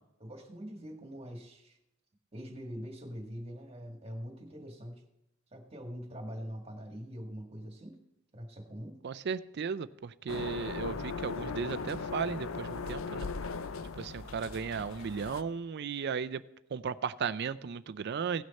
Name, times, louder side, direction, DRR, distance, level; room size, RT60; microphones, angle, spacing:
voice 1, 0.2-1.8 2.3-5.0 5.5-8.0 8.3-9.0, equal, 30° right, 3 dB, 1.8 m, -43 dB
voice 2, 9.0-13.3 14.0-16.4 16.7-18.4, right 6 dB, 55° right, 15 dB, 0.4 m, -35 dB
sound 1, 10.3-15.4, left 4 dB, 75° left, 0.5 m, -38 dB
16.5 x 6.4 x 4.2 m, 0.86 s
head